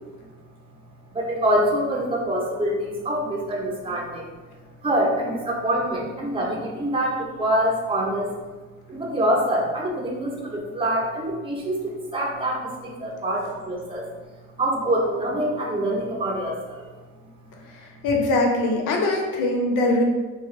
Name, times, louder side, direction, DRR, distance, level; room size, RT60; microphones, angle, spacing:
voice 1, 1.1-4.3 4.8-8.3 8.9-14.0 14.6-16.9, right 1 dB, 20° right, -2 dB, 0.7 m, -25 dB
voice 2, 17.7-20.0, left 2 dB, 90° left, 1 dB, 0.7 m, -22 dB
3.1 x 2.3 x 3.7 m, 1.3 s
cardioid pair, 90°, 30 cm